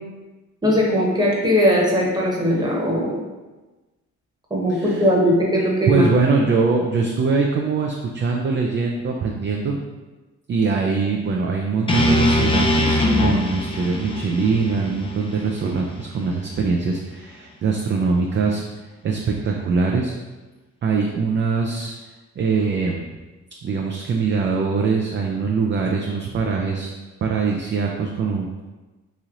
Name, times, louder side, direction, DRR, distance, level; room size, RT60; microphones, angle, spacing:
voice 1, 0.6-3.2 4.5-6.0, equal, 15° right, -3 dB, 1.1 m, -19 dB
voice 2, 4.7-5.1 5.9-9.8 10.5-18.6 19.0-20.1 20.8-22.0 22.4-23.1 23.6-26.9 27.2-28.6, right 4 dB, 40° right, 0 dB, 0.4 m, -22 dB
sound 1, 11.9-16.0, left 1 dB, 20° left, 0.5 m, -21 dB
3.1 x 2.8 x 3.7 m, 1.2 s
cardioid pair, 90°, 30 cm